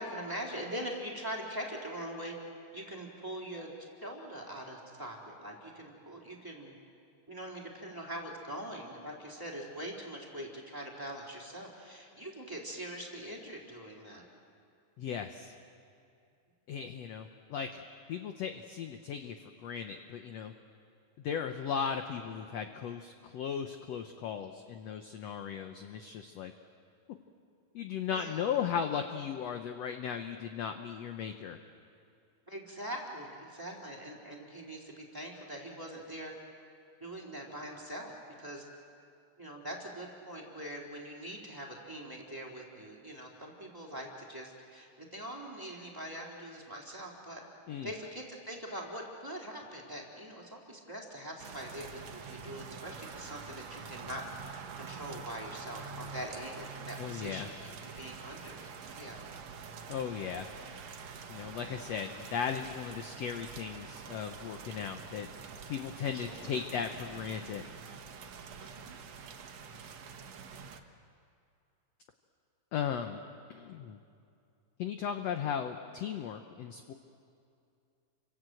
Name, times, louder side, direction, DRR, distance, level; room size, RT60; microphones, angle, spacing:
voice 1, 0.0-2.3 2.7-3.7 4.0-6.8 7.3-14.3 28.1-28.6 32.5-36.3 37.0-38.1 38.4-38.7 39.4-47.4 47.8-59.2 66.1-66.6 68.6-69.0, equal, 5° right, -2 dB, 3.6 m, -43 dB
voice 2, 15.0-15.6 16.7-19.4 19.6-20.5 21.2-26.5 27.8-31.6 47.7-47.9 57.0-57.5 59.9-60.5 61.3-65.3 65.7-67.7 72.7-73.2 73.5-74.0 74.8-76.9, left 7 dB, 65° left, 6 dB, 1.7 m, -36 dB
sound 1, 51.4-70.8, right 5 dB, 60° right, 2.3 m, -46 dB
29.5 x 25.5 x 7.8 m, 2.5 s
omnidirectional pair, 4.0 m